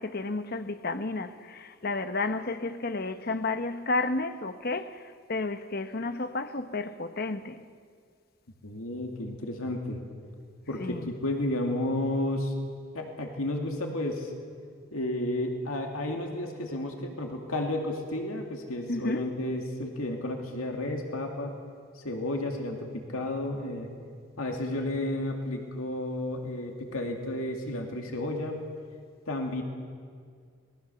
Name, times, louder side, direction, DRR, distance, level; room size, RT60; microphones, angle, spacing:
voice 1, 0.0-7.6 10.8-11.1 18.9-19.3, left 3 dB, 45° left, 0.9 m, -32 dB
voice 2, 8.6-10.0 10.7-12.6 12.9-14.3 14.9-21.5 21.9-23.9 24.4-28.7 29.3-29.6, left 1 dB, 80° left, 2.4 m, -32 dB
26.0 x 19.5 x 7.0 m
head